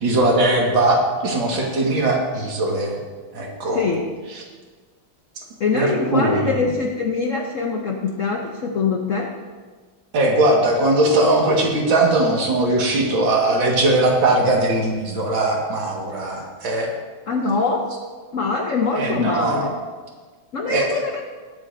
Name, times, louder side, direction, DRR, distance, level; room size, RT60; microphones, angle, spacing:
voice 1, 0.0-2.9 3.3-3.8 5.7-6.6 10.1-16.9 19.0-19.7 20.7-20.9, right 2 dB, 70° right, -1 dB, 2.4 m, -19 dB
voice 2, 3.7-4.1 5.6-9.3 17.3-17.9 18.3-19.7 20.5-21.2, left 4 dB, 65° left, 2 dB, 0.8 m, -23 dB
20.5 x 7.3 x 2.6 m, 1.4 s
omnidirectional pair, 2.3 m